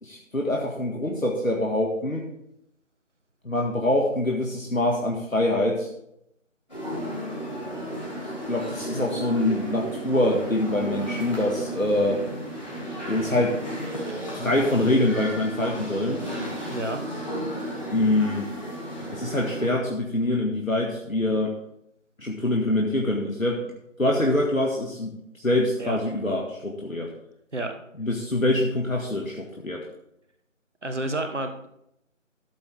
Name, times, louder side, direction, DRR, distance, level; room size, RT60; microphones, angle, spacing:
voice 1, 0.0-2.3 3.4-5.9 8.5-12.2 13.1-13.6 14.3-16.2 17.9-18.5 19.1-21.5 22.2-23.7 24.0-27.1 28.0-29.8, left 1 dB, 85° left, 0 dB, 1.8 m, -25 dB
sound 1, 6.7-19.7, right 1 dB, 35° left, 3.4 m, -34 dB
voice 2, 16.7-17.0 25.8-26.0 27.5-27.7 30.8-31.7, right 1 dB, 60° right, 6 dB, 1.4 m, -30 dB
13.5 x 7.5 x 3.5 m, 0.78 s
figure-of-eight pair, 175°, 39 cm